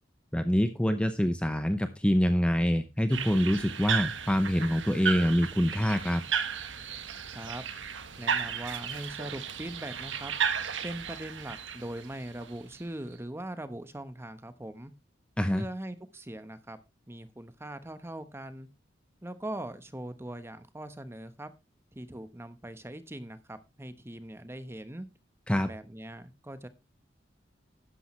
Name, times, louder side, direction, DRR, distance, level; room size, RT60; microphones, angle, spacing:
voice 1, 0.3-6.2 15.4-15.6 25.5-25.7, equal, 5° left, 9 dB, 0.7 m, -25 dB
sound 1, 3.1-12.8, right 7 dB, 80° right, 1.4 m, -34 dB
voice 2, 7.3-7.6 8.2-10.3 10.8-14.9 15.5-16.8 17.1-18.7 19.2-21.5 21.9-25.1 25.6-26.7, right 1 dB, 15° right, 11 dB, 1.0 m, -41 dB
12.0 x 10.0 x 3.2 m, 0.26 s
head